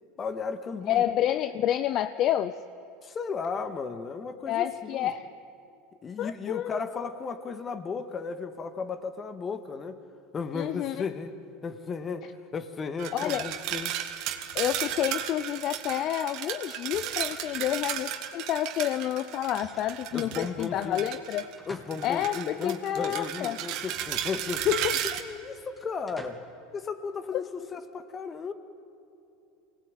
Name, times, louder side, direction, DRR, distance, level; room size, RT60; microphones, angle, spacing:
voice 1, 0.2-1.0 3.0-5.1 6.0-10.0 10.3-11.3 11.6-14.0 20.1-21.0 21.7-24.7 25.0-26.4 26.7-28.5, left 5 dB, 30° left, 9 dB, 1.9 m, -35 dB
voice 2, 0.9-2.6 4.5-5.3 6.2-6.9 10.5-11.1 13.1-13.5 14.5-21.5 22.0-23.6 24.7-25.0, left 11 dB, 50° left, 12 dB, 0.7 m, -29 dB
sound 1, 13.0-21.5 21.9-25.2, right 11 dB, 60° right, 1.9 m, -34 dB
sound 2, 19.5-20.3 21.2-22.5 23.6-24.7 25.7-26.6, left 1 dB, 10° left, 2.7 m, -50 dB
24.5 x 19.0 x 9.2 m, 2.7 s
hypercardioid pair, 95°, 0 cm